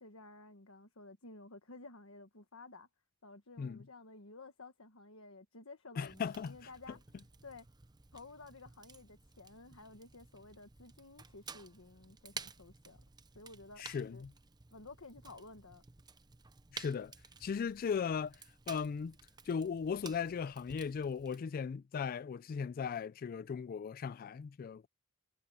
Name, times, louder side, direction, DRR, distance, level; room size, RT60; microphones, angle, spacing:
voice 1, 0.0-2.9 3.2-7.0 7.4-7.7 8.1-13.0 13.3-14.2 14.7-15.8, left 3 dB, 70° left, 1.5 m, -53 dB
voice 2, 6.0-6.5 13.8-14.3 16.7-17.1 17.4-18.4 18.7-19.2 19.5-24.9, left 6 dB, 45° left, 0.3 m, -37 dB
Fire, 6.1-21.4, right 5 dB, 20° right, 0.7 m, -53 dB
head